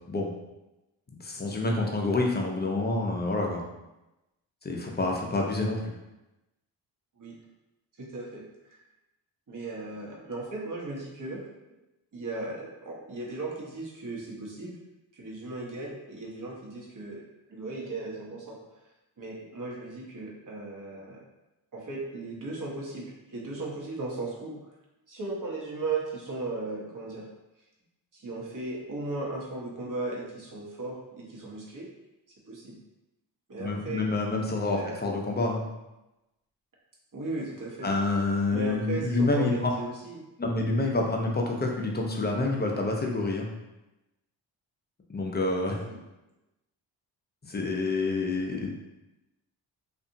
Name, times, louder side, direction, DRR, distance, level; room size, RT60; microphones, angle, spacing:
voice 1, 1.2-3.6 4.6-5.9 33.6-35.7 37.8-39.7 40.4-43.5 45.1-45.8 47.5-48.8, left 2 dB, 20° left, 0 dB, 0.6 m, -28 dB
voice 2, 8.0-8.8 9.5-11.4 12.1-14.8 15.1-17.2 17.5-18.6 19.2-21.2 21.7-24.7 25.1-27.3 28.1-31.9 32.5-32.8 33.5-34.1 34.7-35.0 37.1-37.9 38.5-40.2 45.8-46.0, right 3 dB, 45° right, -4 dB, 1.0 m, -36 dB
2.6 x 2.5 x 2.6 m, 0.98 s
supercardioid pair, 50°, 46 cm